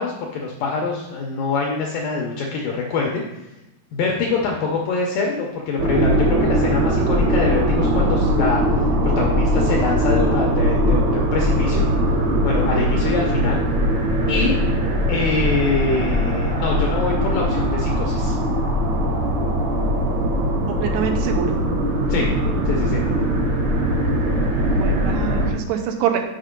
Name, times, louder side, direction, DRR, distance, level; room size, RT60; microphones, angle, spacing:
voice 1, 0.0-3.2 3.9-8.6 9.2-11.8 12.4-13.6 14.3-14.5 15.1-18.4 22.1-22.3 22.7-23.2, left 4 dB, 80° left, -1 dB, 2.0 m, -24 dB
sound 1, 5.8-25.5, equal, 55° right, 2.3 m, -20 dB
voice 2, 20.7-21.6 24.6-26.2, right 9 dB, 80° right, 4 dB, 2.8 m, -25 dB
6.6 x 5.0 x 5.1 m, 0.97 s
omnidirectional pair, 4.8 m